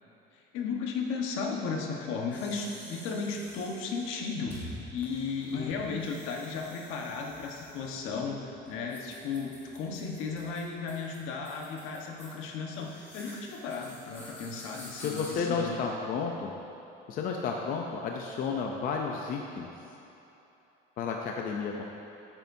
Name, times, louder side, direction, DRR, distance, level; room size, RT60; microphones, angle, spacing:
voice 1, 0.3-15.8, left 4 dB, 75° left, 0 dB, 1.3 m, -35 dB
sound 1, 2.3-15.3, equal, 10° left, 1.7 m, -49 dB
voice 2, 15.0-16.5 17.1-19.7 21.0-21.8, left 5 dB, 40° left, 1 dB, 0.6 m, -32 dB
13.5 x 8.9 x 2.7 m, 3.0 s
cardioid pair, 175°, 21 cm